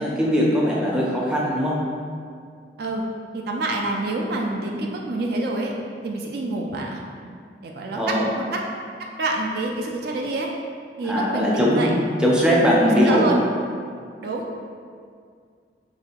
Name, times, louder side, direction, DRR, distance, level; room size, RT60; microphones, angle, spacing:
voice 1, 0.0-1.8 7.9-8.3 11.0-11.9 12.2-13.3, equal, 5° right, -5 dB, 0.5 m, -20 dB
voice 2, 3.3-5.7 6.0-7.0 7.6-8.6 9.0-10.5 11.0-11.9 12.9-13.4 14.2-14.4, right 2 dB, 60° right, 0 dB, 0.4 m, -27 dB
2.9 x 2.7 x 4.3 m, 2.1 s
head